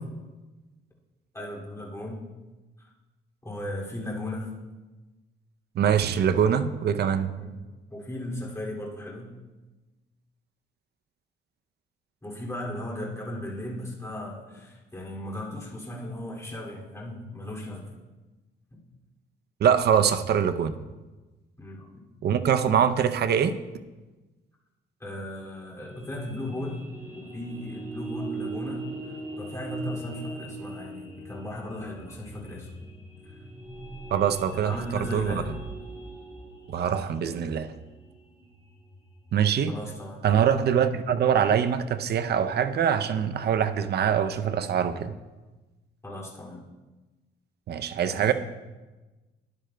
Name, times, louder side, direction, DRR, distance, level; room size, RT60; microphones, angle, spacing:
voice 1, 1.3-2.2 2.8-2.9 3.4-4.5 7.4-7.6 7.9-9.3 12.2-17.9 21.6-21.9 25.0-26.8 27.1-32.7 33.2-33.4 34.6-35.5 39.7-40.3 46.0-46.6 48.1-48.3, left 1 dB, 15° left, -4 dB, 2.5 m, -36 dB
voice 2, 5.7-7.3 19.6-20.8 22.2-23.5 34.1-35.4 36.7-37.7 39.3-39.7 40.2-45.1 47.7-48.3, right 8 dB, 55° right, 11 dB, 0.6 m, -24 dB
sound 1, 25.8-39.9, right 2 dB, 15° right, 3.3 m, -41 dB
12.5 x 10.0 x 2.2 m, 1.2 s
cardioid pair, 90°, 20 cm